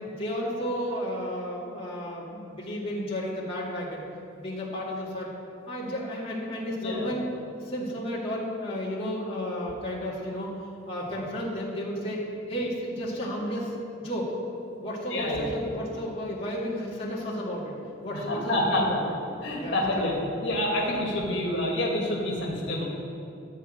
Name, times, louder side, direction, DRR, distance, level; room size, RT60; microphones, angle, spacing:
voice 1, 0.1-4.0 4.3-5.3 5.7-7.3 7.6-10.5 10.9-12.2 12.5-13.7 14.0-14.3 14.8-17.8 18.0-19.1 19.6-20.1, equal, 30° left, -6 dB, 2.1 m, -32 dB
voice 2, 15.1-15.5 18.1-19.0 19.4-22.8, left 1 dB, 70° left, -3 dB, 2.1 m, -28 dB
13.0 x 4.8 x 8.8 m, 2.7 s
head